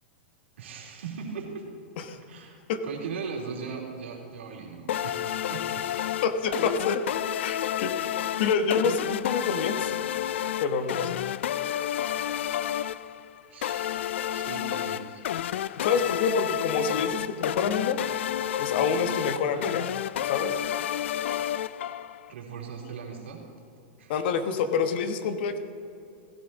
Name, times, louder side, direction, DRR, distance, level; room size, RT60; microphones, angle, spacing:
voice 1, 0.6-1.6 2.2-5.9 13.5-15.2 22.3-23.4 24.0-24.1, right 5 dB, 85° right, -1 dB, 3.0 m, -39 dB
sound 1, 4.9-22.3, left 11 dB, 80° left, 0.4 m, -30 dB
voice 2, 6.2-7.0 7.4-9.9 10.6-11.2 15.8-18.0 18.6-19.9 20.3-20.6 24.1-25.6, left 5 dB, 60° left, 8 dB, 1.2 m, -27 dB
16.5 x 11.5 x 4.1 m, 2.6 s
hypercardioid pair, 135°, 6 cm